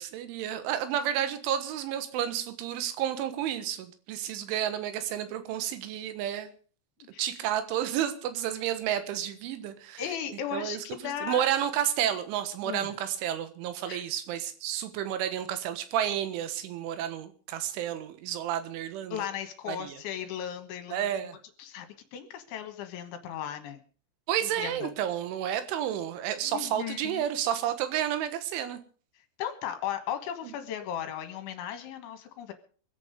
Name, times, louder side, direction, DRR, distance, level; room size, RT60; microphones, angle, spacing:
voice 1, 0.0-6.5 7.2-10.0 10.5-10.8 11.2-19.2 19.7-20.0 20.9-21.4 24.3-28.8, right 10 dB, 75° right, 10 dB, 3.7 m, -31 dB
voice 2, 10.0-11.5 12.6-12.9 13.9-14.0 19.1-21.0 21.6-23.8 24.6-24.9 26.4-27.3 29.4-32.5, left 10 dB, 75° left, 6 dB, 3.6 m, -36 dB
24.5 x 8.5 x 5.1 m, 0.42 s
omnidirectional pair, 5.8 m